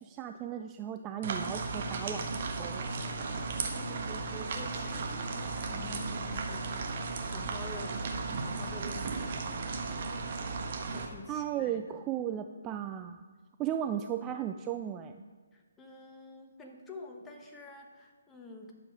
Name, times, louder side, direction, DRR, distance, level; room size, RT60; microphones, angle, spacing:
voice 1, 0.0-2.9 11.3-13.2 13.6-15.2, right 10 dB, 20° right, 7 dB, 0.3 m, -36 dB
sound 1, 1.2-11.1, right 4 dB, 45° right, 1.2 m, -35 dB
voice 2, 3.0-10.2 10.9-12.0 15.5-18.7, left 2 dB, 10° left, 1 dB, 1.2 m, -48 dB
11.0 x 7.0 x 4.9 m, 1.4 s
figure-of-eight pair, 140°, 0 cm